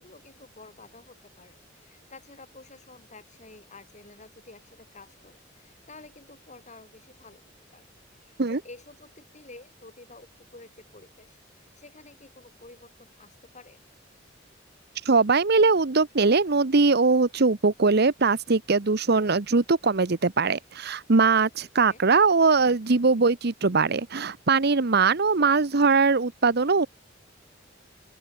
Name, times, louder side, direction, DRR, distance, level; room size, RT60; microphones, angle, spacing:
voice 1, 0.0-7.9 8.2-13.8 21.8-22.0, left 3 dB, 40° left, 6.9 m, -50 dB
voice 2, 15.1-26.9, right 4 dB, 60° right, 1.0 m, -21 dB
open air
head